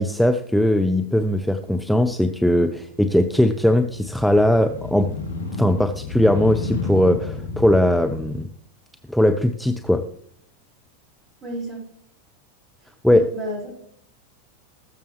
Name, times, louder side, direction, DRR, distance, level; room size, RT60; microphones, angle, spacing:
voice 1, 0.0-5.1 5.6-8.5 9.1-10.0 13.0-13.3, left 1 dB, ahead, 7 dB, 0.6 m, -19 dB
Motorcycle, 1.3-8.4, left 3 dB, 70° left, 1.4 m, -32 dB
voice 2, 11.4-11.8 13.1-13.9, right 1 dB, 30° right, 0 dB, 4.9 m, -32 dB
20.5 x 7.0 x 3.2 m, 0.65 s
figure-of-eight pair, 90°, 0 cm